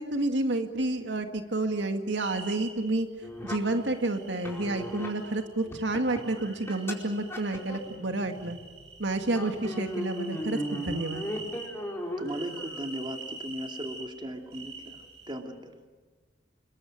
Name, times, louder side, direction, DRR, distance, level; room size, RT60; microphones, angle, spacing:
voice 1, 0.0-3.1 3.4-8.6 9.0-11.2, right 2 dB, 85° right, 6 dB, 1.9 m, -30 dB
sound 1, 2.2-2.7 3.8-5.4 6.0-8.0 8.3-11.7 12.3-14.0 14.5-15.4, right 4 dB, 65° right, 7.3 m, -45 dB
sound 2, 3.2-3.5 4.4-5.1 5.6-6.9 7.3-8.9 9.2-12.8, equal, 15° left, 4.5 m, -37 dB
voice 2, 12.2-15.0 15.3-15.7, equal, 25° right, 4 dB, 2.6 m, -37 dB
30.0 x 21.0 x 9.3 m, 1.4 s
head